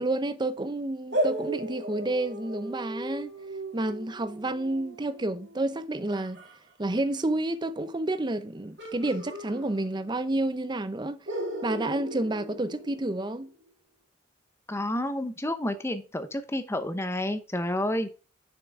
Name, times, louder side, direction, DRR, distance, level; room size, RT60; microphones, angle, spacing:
voice 1, 0.0-3.3 3.7-6.4 6.8-11.2 11.6-13.5, right 2 dB, 20° right, 0.6 m, -30 dB
sound 1, 1.1-6.5 8.8-10.2 10.5-10.6 11.3-13.4, right 1 dB, 60° right, 3.0 m, -36 dB
voice 2, 14.7-18.1, left 1 dB, 15° left, 0.8 m, -30 dB
6.7 x 5.9 x 4.7 m
head